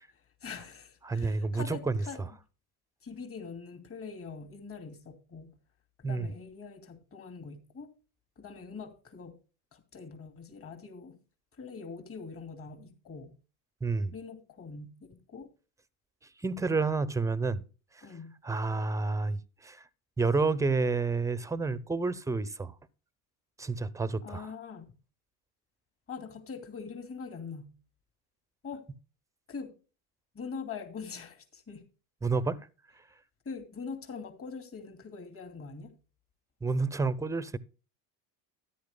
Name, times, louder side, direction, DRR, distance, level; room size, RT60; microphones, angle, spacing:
voice 1, 0.1-2.3 3.0-5.5 6.0-7.9 8.4-9.4 9.7-11.2 11.5-13.3 14.1-15.5 18.0-18.3 24.2-25.0 26.1-27.7 28.6-28.9 29.5-29.7 30.3-31.9 33.4-35.9, left 5 dB, 30° left, 2.6 m, -43 dB
voice 2, 1.0-2.3 6.0-6.3 13.8-14.1 16.4-17.6 18.4-19.8 20.2-22.7 23.6-24.5 32.2-32.7 36.6-37.6, right 4 dB, 5° right, 0.7 m, -29 dB
13.5 x 10.5 x 2.2 m
supercardioid pair, 100°, 43 cm